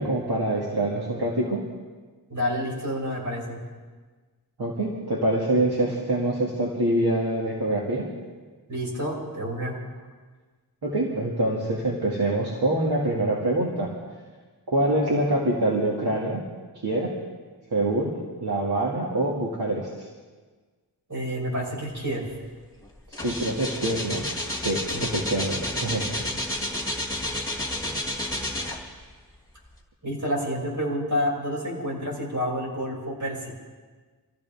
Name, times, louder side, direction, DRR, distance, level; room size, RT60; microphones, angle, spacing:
voice 1, 0.0-1.6 4.6-8.1 10.8-13.9 14.7-16.4 16.8-17.1 17.7-18.1 18.4-20.1 23.1-24.2 24.6-26.1, right 1 dB, 70° right, -4 dB, 2.4 m, -25 dB
voice 2, 2.3-3.6 8.7-9.7 21.1-22.2 24.9-25.2 30.0-33.4, equal, 45° right, -4 dB, 6.6 m, -29 dB
sound 1, 22.3-22.5 22.8-29.1 29.7-29.8, left 1 dB, 10° left, 2.6 m, -30 dB
26.0 x 15.5 x 3.6 m, 1.4 s
wide cardioid pair, 90°, 40 cm